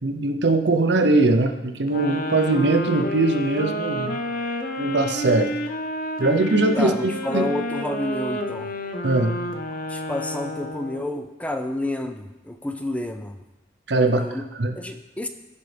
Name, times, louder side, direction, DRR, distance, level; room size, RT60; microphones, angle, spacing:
voice 1, 0.0-4.2 4.8-5.5 6.2-6.9 7.3-7.5 9.0-9.4 13.9-14.3 14.6-14.8, right 2 dB, 80° right, 7 dB, 0.8 m, -21 dB
sound 1, 1.9-11.1, left 1 dB, 55° left, 0.7 m, -30 dB
voice 2, 6.8-8.7 9.9-13.4 14.1-14.4 14.8-15.3, left 1 dB, 10° left, 6 dB, 0.5 m, -29 dB
15.0 x 5.3 x 3.4 m, 1.0 s
head